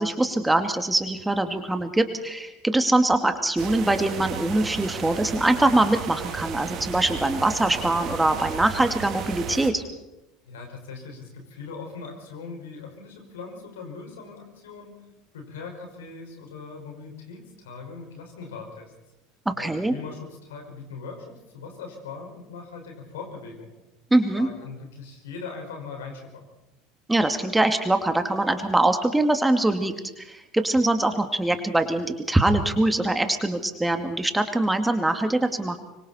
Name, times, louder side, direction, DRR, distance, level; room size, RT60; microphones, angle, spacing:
voice 1, 0.0-9.8 19.5-19.9 24.1-24.5 27.1-35.8, right 2 dB, 10° right, 7 dB, 2.3 m, -23 dB
sound 1, 3.6-9.7, right 8 dB, 45° right, 2.6 m, -34 dB
voice 2, 10.4-15.0 15.3-18.9 19.6-23.7 24.3-26.4, left 4 dB, 75° left, 2 dB, 5.6 m, -40 dB
25.0 x 24.0 x 4.4 m, 0.95 s
hypercardioid pair, 75°, 0 cm